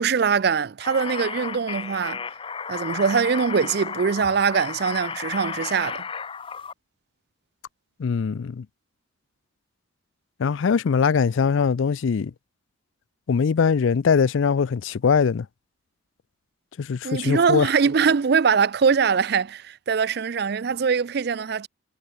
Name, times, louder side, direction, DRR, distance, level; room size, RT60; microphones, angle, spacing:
voice 1, 0.0-2.2 2.7-6.0 17.0-21.7, right 6 dB, 50° right, 0.4 m, -22 dB
sound 1, 0.8-6.7, left 6 dB, 25° left, 0.6 m, -33 dB
voice 2, 8.0-8.7 10.4-12.3 13.3-15.5 16.8-17.7, left 6 dB, 75° left, 0.4 m, -21 dB
head